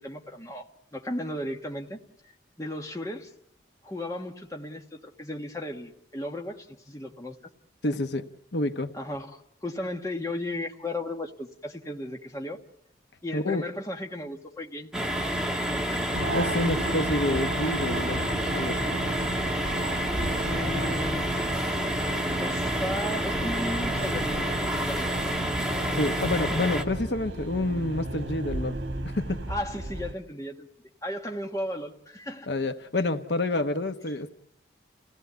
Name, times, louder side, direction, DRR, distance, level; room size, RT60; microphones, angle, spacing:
voice 1, 0.0-2.0 2.6-3.3 3.8-7.4 8.9-12.6 13.2-15.0 15.3-16.0 20.4-21.3 22.4-24.5 24.8-25.1 29.5-30.7 31.0-32.5, left 1 dB, 20° left, 2 dB, 1.5 m, -35 dB
voice 2, 7.8-9.0 13.3-13.6 16.3-18.2 18.5-18.9 25.9-28.8 29.0-29.4 32.5-34.3, left 2 dB, 70° left, 8 dB, 1.1 m, -28 dB
sound 1, 14.9-26.8, equal, 5° right, 1.6 m, -29 dB
sound 2, 16.1-30.1, right 1 dB, 85° right, 1.3 m, -34 dB
29.0 x 17.0 x 8.1 m, 0.78 s
head